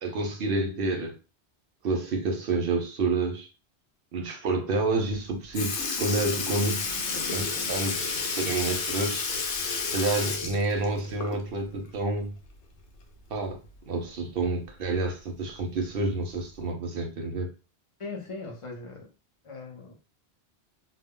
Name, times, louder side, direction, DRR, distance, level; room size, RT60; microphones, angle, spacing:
voice 1, 0.0-1.2 1.8-3.5 4.1-6.8 7.3-9.2 9.9-12.3 13.3-13.6 13.9-17.5, right 3 dB, 65° right, 4 dB, 0.7 m, -29 dB
Sink (filling or washing) / Liquid, 5.1-5.2 5.5-11.6 12.0-12.1 13.6-13.7 14.7-14.8 15.6-15.8 16.6-16.7, left 4 dB, 85° left, 0.9 m, -31 dB
voice 2, 18.0-19.1 19.4-20.0, left 3 dB, 45° left, 1 dB, 0.4 m, -39 dB
2.1 x 2.0 x 3.5 m, 0.31 s
omnidirectional pair, 1.1 m